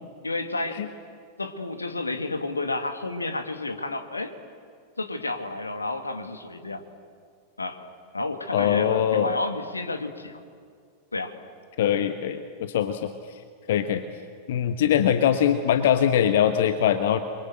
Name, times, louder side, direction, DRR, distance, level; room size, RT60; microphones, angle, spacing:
voice 1, 0.2-0.8 1.4-4.3 5.0-6.8 7.6-7.8 8.1-10.4 11.1-11.3, left 2 dB, 80° left, 7 dB, 1.9 m, -31 dB
voice 2, 8.5-9.3 11.8-13.4 13.7-14.0 14.5-17.2, left 9 dB, 55° left, 9 dB, 1.1 m, -22 dB
29.0 x 23.5 x 7.7 m, 2.2 s
figure-of-eight pair, 90°, 0 cm